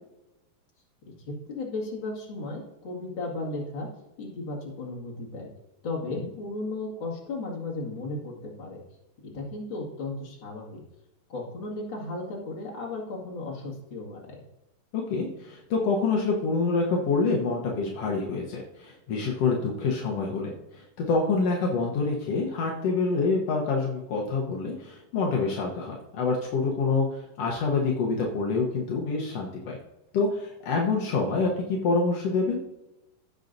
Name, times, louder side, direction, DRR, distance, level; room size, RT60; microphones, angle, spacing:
voice 1, 1.3-3.9 4.2-5.5 5.8-8.8 9.3-10.8 11.3-14.4, left 2 dB, 40° left, -3 dB, 2.2 m, -35 dB
voice 2, 14.9-29.8 30.1-32.6, left 4 dB, 70° left, -1 dB, 1.5 m, -26 dB
15.5 x 7.3 x 2.6 m, 0.97 s
omnidirectional pair, 4.2 m